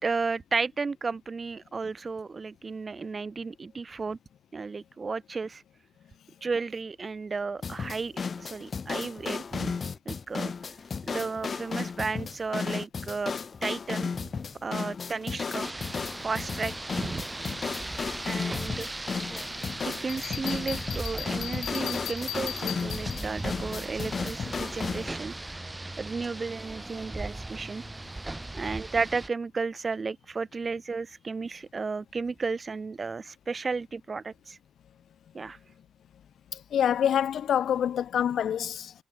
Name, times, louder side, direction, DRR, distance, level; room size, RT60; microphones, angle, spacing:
voice 1, 0.0-4.2 4.5-5.6 6.4-9.8 10.0-10.5 11.1-13.3 13.6-14.3 14.6-15.7 16.2-17.3 18.3-18.9 20.0-25.3 25.8-27.8 28.5-34.6 35.3-35.6, right 4 dB, 30° right, 3.1 m, -33 dB
sound 1, 7.6-25.1, left 5 dB, 40° left, 1.1 m, -34 dB
Rain, 15.6-29.3, right 2 dB, 15° right, 1.5 m, -38 dB
Bell, 20.1-23.4, left 15 dB, 90° left, 1.2 m, -38 dB
voice 2, 36.7-38.9, left 9 dB, 65° left, 0.5 m, -26 dB
cardioid pair, 90°, 0 cm